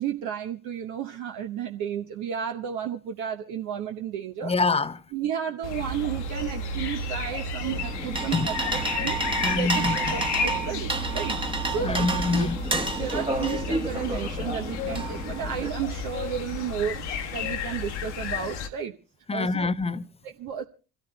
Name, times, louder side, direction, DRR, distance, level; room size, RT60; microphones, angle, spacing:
voice 1, 0.0-4.5 5.1-8.5 8.9-9.2 9.5-11.4 11.7-12.5 13.0-17.0 17.3-18.9 19.3-19.7 20.2-20.6, right 8 dB, 60° right, 0.9 m, -32 dB
voice 2, 4.4-5.0 8.3-8.5 9.4-10.2 11.8-12.9 19.3-20.1, left 4 dB, 15° left, 0.7 m, -26 dB
sound 1, 5.6-18.7, left 3 dB, 80° left, 1.4 m, -32 dB
sound 2, 7.7-15.7, right 3 dB, 15° right, 1.2 m, -30 dB
27.5 x 13.0 x 2.2 m
figure-of-eight pair, 50°, 34 cm